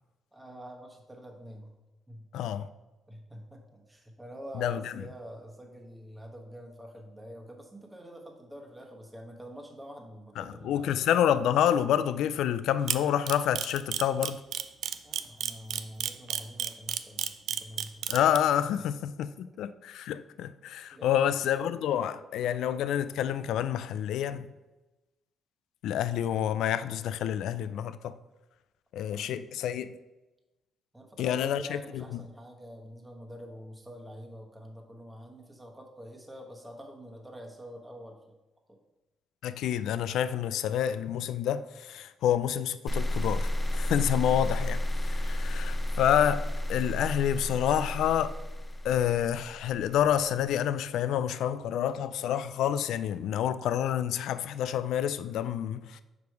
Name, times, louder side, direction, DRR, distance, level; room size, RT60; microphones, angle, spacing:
voice 1, 0.3-1.7 2.1-2.3 3.1-11.0 15.0-18.0 18.8-18.9 19.3-19.4 20.9-21.2 29.1-29.5 30.9-38.4 38.7-38.8, equal, 10° right, 1.1 m, -46 dB
voice 2, 2.3-2.7 4.6-4.9 10.4-14.4 18.1-24.5 25.8-28.2 28.9-30.0 31.2-32.0 39.4-48.3 48.8-56.0, left 10 dB, 80° left, 0.3 m, -28 dB
Camera, 12.9-18.4, right 10 dB, 75° right, 0.3 m, -30 dB
sound 1, 42.9-50.0, left 1 dB, 15° left, 0.6 m, -32 dB
5.2 x 4.7 x 4.6 m
cardioid pair, 90°, 0 cm